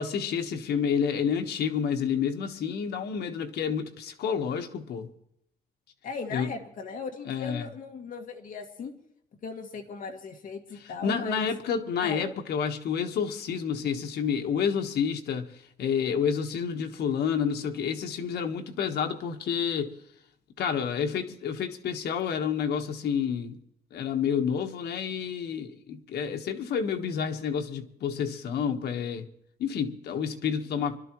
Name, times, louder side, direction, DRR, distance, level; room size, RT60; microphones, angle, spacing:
voice 1, 0.0-5.1 6.3-6.5 7.2-7.6 11.0-15.5 15.8-19.9 20.6-23.6 23.9-29.3 29.6-31.0, left 7 dB, 90° left, 1.3 m, -29 dB
voice 2, 6.0-8.9 9.4-11.5 12.0-12.3, left 4 dB, 55° left, 2.0 m, -38 dB
25.0 x 12.5 x 3.1 m
wide cardioid pair, 155°, 16 cm